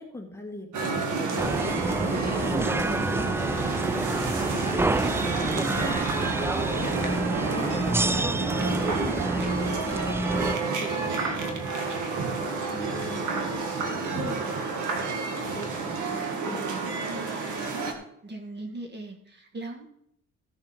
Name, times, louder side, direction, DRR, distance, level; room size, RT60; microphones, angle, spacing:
voice 1, 0.0-17.3, left 1 dB, 10° left, 1 dB, 1.8 m, -43 dB
sound 1, 0.7-17.9, right 4 dB, 80° right, 1.8 m, -30 dB
sound 2, 1.4-10.6, right 2 dB, 10° right, 0.3 m, -28 dB
voice 2, 3.1-3.7 16.7-17.3 18.2-19.8, right 2 dB, 35° right, 3 dB, 2.0 m, -40 dB
15.0 x 6.9 x 4.5 m, 0.72 s
cardioid pair, 90°, 30 cm